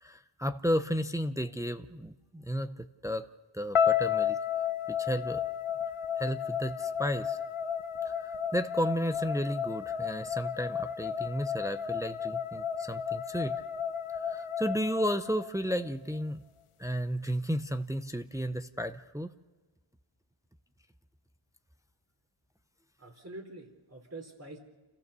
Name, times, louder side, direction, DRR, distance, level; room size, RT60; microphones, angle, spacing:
voice 1, 0.0-3.2 3.5-4.4 4.9-5.4 6.2-7.4 8.0-13.6 14.2-16.4 16.8-19.3, equal, 5° right, 9 dB, 0.6 m, -33 dB
sound 1, 3.7-15.9, left 8 dB, 90° left, 1.1 m, -32 dB
voice 2, 23.0-24.6, right 2 dB, 30° right, 4 dB, 3.4 m, -45 dB
29.0 x 15.0 x 6.8 m, 1.2 s
wide cardioid pair, 155°, 49 cm